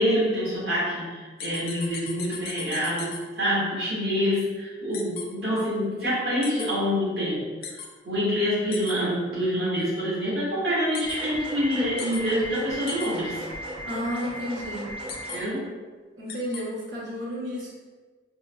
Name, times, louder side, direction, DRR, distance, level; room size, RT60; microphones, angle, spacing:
voice 1, 0.0-7.5 8.0-13.4 15.3-15.7, equal, 60° right, -9 dB, 1.4 m, -26 dB
sound 1, 1.4-3.2 4.9-5.2 6.4-6.7 7.6-7.9 8.7-8.9 10.9-11.2 12.0-12.2 12.9-13.1 15.1-15.4 16.3-16.6, left 7 dB, 55° left, 0.3 m, -37 dB
sound 2, 11.0-15.4, right 1 dB, 30° right, 0.4 m, -36 dB
voice 2, 13.8-14.9 16.2-17.7, equal, 85° right, -7 dB, 0.9 m, -32 dB
4.5 x 2.1 x 2.2 m, 1.4 s
head